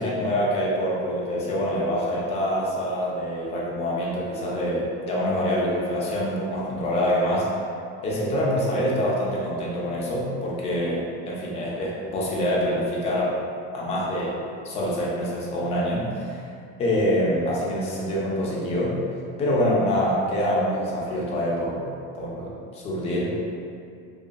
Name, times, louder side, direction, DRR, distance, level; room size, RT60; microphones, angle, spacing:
voice 1, 0.0-7.5 8.0-13.3 13.7-14.3 14.6-16.4 16.8-18.9 19.4-21.9 22.1-23.3, equal, 20° left, -5 dB, 0.4 m, -25 dB
2.7 x 2.5 x 2.2 m, 2.4 s
cardioid pair, 165°, 29 cm